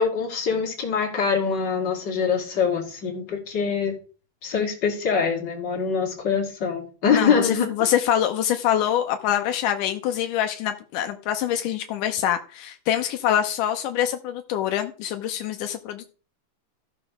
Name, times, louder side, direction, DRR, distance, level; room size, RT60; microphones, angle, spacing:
voice 1, 0.0-3.9 4.4-7.7, left 6 dB, 35° left, 3.1 m, -24 dB
voice 2, 7.1-16.1, left 10 dB, 80° left, 2.3 m, -25 dB
14.0 x 5.0 x 6.3 m
omnidirectional pair, 3.8 m